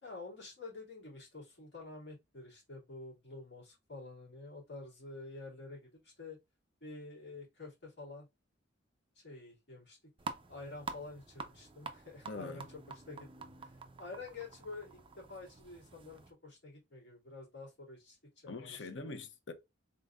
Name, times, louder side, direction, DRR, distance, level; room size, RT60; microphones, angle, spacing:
voice 1, 0.0-6.4 6.8-8.3 9.2-10.0 10.5-12.6 13.1-19.1, left 3 dB, 65° left, 2.7 m, -49 dB
sound 1, 10.2-16.3, right 4 dB, 30° right, 0.6 m, -48 dB
voice 2, 12.3-12.7 18.5-19.5, left 3 dB, 90° left, 0.8 m, -43 dB
3.8 x 3.8 x 2.5 m
head